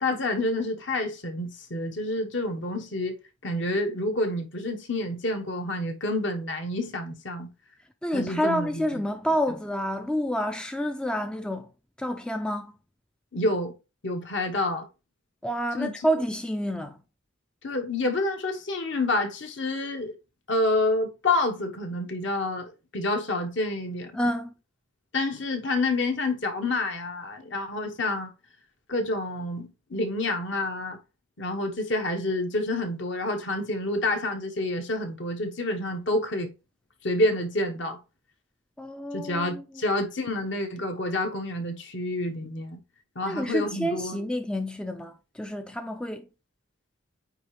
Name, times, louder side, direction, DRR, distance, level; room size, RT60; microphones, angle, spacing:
voice 1, 0.0-3.2 3.4-7.5 8.1-9.0 13.3-13.7 14.0-14.9 15.7-16.1 17.6-20.1 20.5-24.2 25.1-28.3 28.9-31.0 31.4-36.5 37.0-38.0 39.1-42.8 43.1-44.3, left 2 dB, 60° left, 1.3 m, -28 dB
voice 2, 8.0-11.7 12.0-12.7 15.4-17.0 24.1-24.5 38.8-39.6 43.2-46.3, equal, 5° left, 0.3 m, -29 dB
9.0 x 3.3 x 3.2 m
head